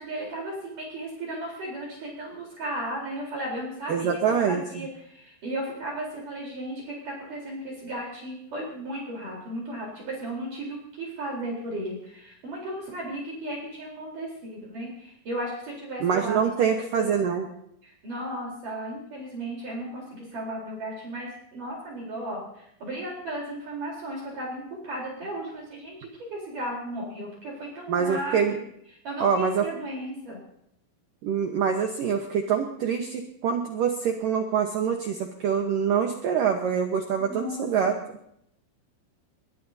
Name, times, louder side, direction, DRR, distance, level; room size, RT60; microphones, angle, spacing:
voice 1, 0.0-16.5 16.9-17.4 17.8-28.6 29.0-30.4 37.2-38.0, right 1 dB, 45° right, -3 dB, 5.1 m, -35 dB
voice 2, 3.9-4.6 16.0-17.5 27.9-28.6 29.2-29.7 31.2-37.9, right 7 dB, 85° right, 4 dB, 1.9 m, -25 dB
21.5 x 20.5 x 2.8 m, 0.74 s
omnidirectional pair, 5.7 m